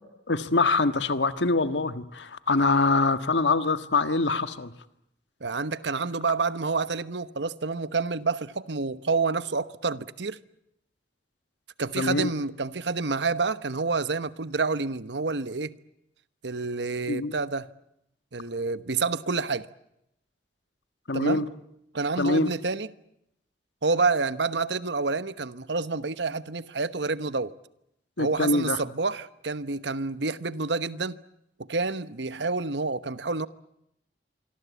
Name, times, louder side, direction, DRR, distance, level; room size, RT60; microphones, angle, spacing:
voice 1, 0.3-4.7 12.0-12.3 17.1-17.4 21.1-21.5 22.2-22.5 28.2-28.8, left 3 dB, 90° left, 1.6 m, -24 dB
voice 2, 5.4-10.4 11.8-15.8 16.4-17.7 18.3-19.7 21.1-21.4 21.9-22.9 23.8-27.5 28.2-31.2 31.6-33.5, right 4 dB, 80° right, 1.1 m, -28 dB
26.0 x 24.0 x 8.3 m
head